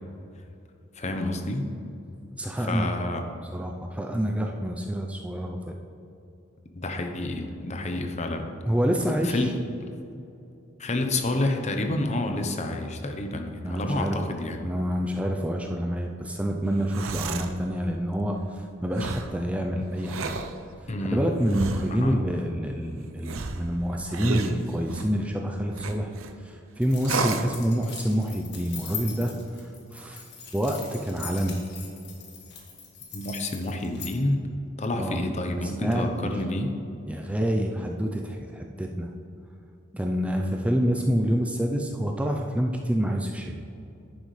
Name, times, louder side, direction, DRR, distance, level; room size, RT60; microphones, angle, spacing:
voice 1, 1.0-1.7 2.6-3.2 6.7-8.5 9.0-9.6 10.8-14.6 20.9-21.2 21.9-22.2 33.1-34.5 34.8-36.7, left 2 dB, 35° left, 5 dB, 0.8 m, -29 dB
voice 2, 2.4-3.0 3.5-5.7 8.7-9.5 13.6-14.2 14.6-20.4 21.1-26.1 26.4-30.2 30.5-31.6 35.0-35.2 35.6-36.4 37.1-39.1 39.9-43.6, equal, 5° right, 2 dB, 0.4 m, -27 dB
sound 1, 16.7-17.6 18.9-19.3 20.0-20.5 21.5-22.0 23.2-25.2 25.8-26.3 27.0-27.5, right 4 dB, 85° right, 0.6 m, -32 dB
sound 2, 26.8-34.1, left 6 dB, 55° left, 1.8 m, -40 dB
10.5 x 9.4 x 3.2 m, 2.7 s
head